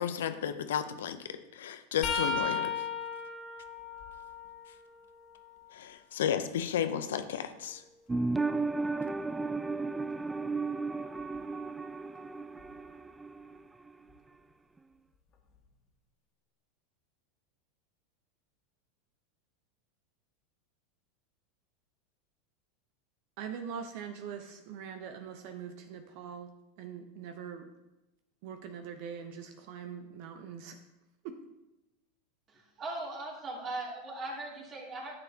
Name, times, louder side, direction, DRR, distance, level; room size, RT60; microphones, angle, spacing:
voice 1, 0.0-2.8 5.7-7.8, left 9 dB, 75° left, 9 dB, 0.6 m, -33 dB
sound 1, 2.0-5.8 6.3-8.3 11.2-11.4 12.6-12.8 14.1-14.2, left 5 dB, 45° left, 1.5 m, -38 dB
sound 2, 8.1-13.6 13.9-14.0, right 3 dB, 10° right, 0.3 m, -34 dB
voice 2, 23.4-26.5 26.8-27.7 28.4-30.8 31.2-31.4, right 7 dB, 60° right, 6 dB, 0.8 m, -42 dB
voice 3, 32.5-35.1, right 2 dB, 35° right, -2 dB, 2.6 m, -39 dB
10.5 x 6.9 x 2.8 m, 0.96 s
hypercardioid pair, 95°, 0 cm